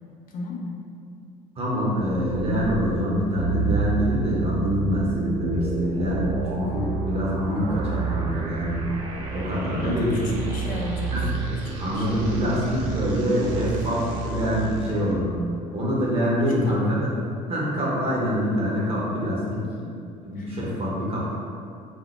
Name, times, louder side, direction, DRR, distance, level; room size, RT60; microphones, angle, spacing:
voice 1, 0.3-0.8 9.8-11.2 11.9-12.2 16.6-16.8 20.4-20.6, left 3 dB, 40° left, -1 dB, 0.5 m, -34 dB
voice 2, 1.6-8.8 9.3-10.5 11.1-11.3 11.8-15.3 15.7-17.1 17.5-19.6 20.2-21.3, equal, 30° right, -5 dB, 0.7 m, -25 dB
sound 1, 1.9-15.1, right 4 dB, 60° right, 0.4 m, -30 dB
2.1 x 2.0 x 3.0 m, 2.4 s
figure-of-eight pair, 60°, 21 cm